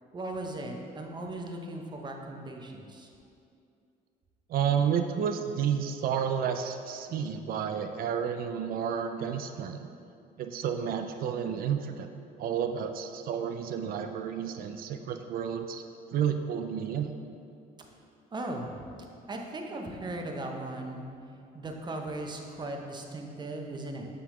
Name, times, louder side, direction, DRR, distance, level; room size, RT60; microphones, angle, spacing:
voice 1, 0.1-3.1 18.3-18.8 19.3-21.1 21.5-24.1, right 2 dB, 25° right, 2 dB, 0.7 m, -37 dB
voice 2, 4.5-9.9 10.4-12.1 12.4-15.8 16.1-17.1, right 8 dB, 60° right, 7 dB, 0.4 m, -31 dB
7.6 x 3.7 x 3.7 m, 2.5 s
cardioid pair, 110°, 17 cm